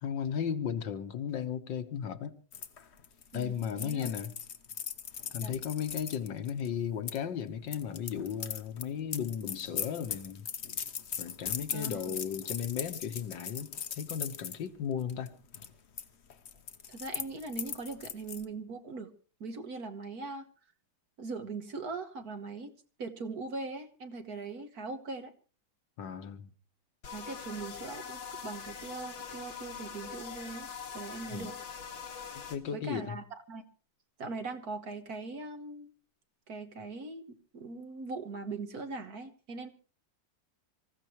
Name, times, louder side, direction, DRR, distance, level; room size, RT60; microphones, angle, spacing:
voice 1, 0.0-2.3 3.3-4.3 5.3-10.5 11.2-15.3 26.0-26.5 31.3-31.5 32.3-33.2, left 8 dB, 75° left, 1.8 m, -35 dB
sound 1, 2.5-7.2 7.7-14.6 15.0-15.3 15.5-16.1 16.3-18.4, left 7 dB, 45° left, 0.9 m, -39 dB
voice 2, 3.3-4.1 5.4-5.6 11.7-12.2 16.9-19.1 19.4-20.5 21.2-22.7 23.0-25.3 27.1-31.5 32.7-33.6 34.2-35.9 36.5-37.2 37.5-39.7, right 3 dB, 55° right, 1.7 m, -40 dB
sound 2, 27.0-32.6, left 6 dB, 90° left, 2.4 m, -43 dB
25.5 x 15.0 x 3.1 m
omnidirectional pair, 2.0 m